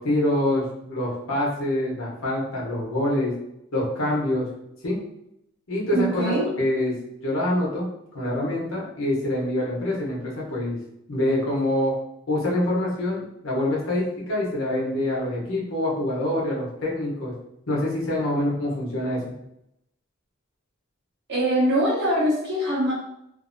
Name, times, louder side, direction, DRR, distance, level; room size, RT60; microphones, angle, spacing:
voice 1, 0.0-3.3 3.7-4.5 4.8-5.0 5.7-7.0 7.2-7.9 8.1-10.8 11.1-11.9 12.3-17.3 17.7-19.2, left 1 dB, 75° left, -4 dB, 0.8 m, -25 dB
voice 2, 5.9-6.4 21.3-22.9, right 1 dB, 55° right, -6 dB, 1.0 m, -23 dB
2.7 x 2.0 x 2.5 m, 0.81 s
head